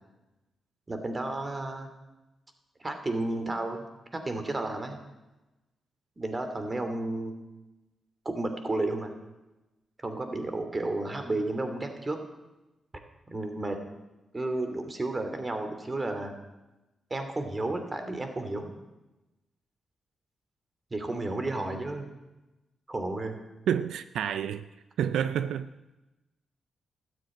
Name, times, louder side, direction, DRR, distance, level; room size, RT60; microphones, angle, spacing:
voice 1, 0.9-1.9 2.8-3.8 4.1-5.0 6.2-7.3 8.2-9.1 10.0-12.2 13.3-13.8 14.3-16.3 17.1-18.7 20.9-22.1 22.9-23.4, right 2 dB, 30° right, 6 dB, 2.7 m, -32 dB
voice 2, 23.7-24.7 25.0-25.7, right 9 dB, 85° right, 12 dB, 0.4 m, -28 dB
13.0 x 9.5 x 9.0 m, 1.1 s
cardioid pair, 65°, 0 cm